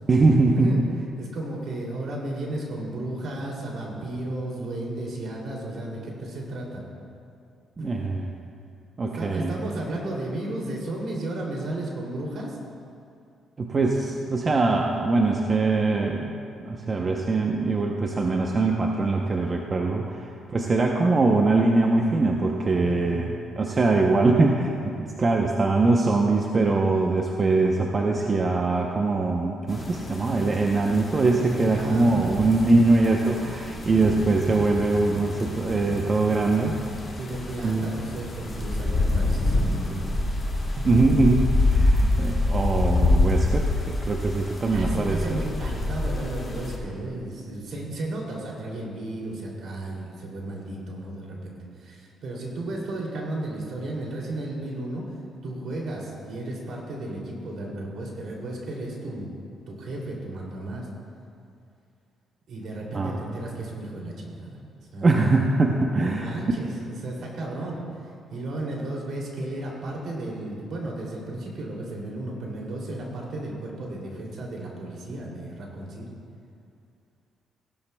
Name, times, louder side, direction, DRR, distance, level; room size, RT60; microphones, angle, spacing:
voice 1, 0.1-0.9 7.8-8.3 9.0-9.5 13.6-16.4 16.6-36.7 37.6-38.0 40.8-45.4 62.9-63.2 65.0-66.4, right 3 dB, 35° right, 1 dB, 0.7 m, -22 dB
voice 2, 1.2-6.8 7.8-7.9 9.0-12.6 14.2-14.3 22.8-23.3 31.7-32.8 37.2-40.2 40.8-41.0 44.7-55.0 55.4-59.3 59.7-60.9 62.5-64.6 64.9-65.1 66.0-67.8 68.3-76.1, right 2 dB, 65° right, -2 dB, 2.8 m, -34 dB
sound 1, 29.7-46.8, left 2 dB, 30° left, 2.2 m, -27 dB
16.5 x 12.0 x 2.3 m, 2.5 s
cardioid pair, 90°, 0 cm